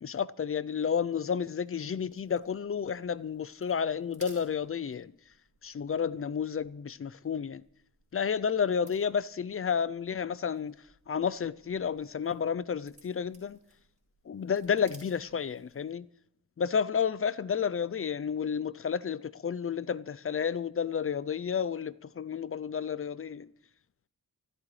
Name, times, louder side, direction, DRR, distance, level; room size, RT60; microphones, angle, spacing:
voice 1, 0.0-5.1 5.6-7.6 8.1-10.7 11.1-13.6 14.3-16.1 16.6-23.5, left 7 dB, 35° left, 0.4 m, -31 dB
sound 1, 1.6-16.0, right 1 dB, 20° right, 4.9 m, -61 dB
25.5 x 12.5 x 3.2 m
wide cardioid pair, 75°, 39 cm